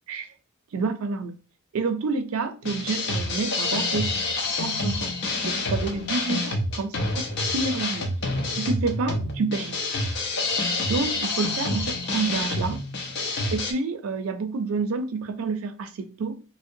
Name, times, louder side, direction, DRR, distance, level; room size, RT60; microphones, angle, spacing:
voice 1, 0.7-1.4 1.7-4.2 4.5-5.1 5.4-7.2 7.5-8.1 8.5-9.8 10.3-10.4 10.9-12.8 13.5-16.4, right 4 dB, 75° right, 0.4 m, -28 dB
sound 1, 2.6-13.7, left 2 dB, 50° left, 0.5 m, -28 dB
2.6 x 2.1 x 2.5 m
head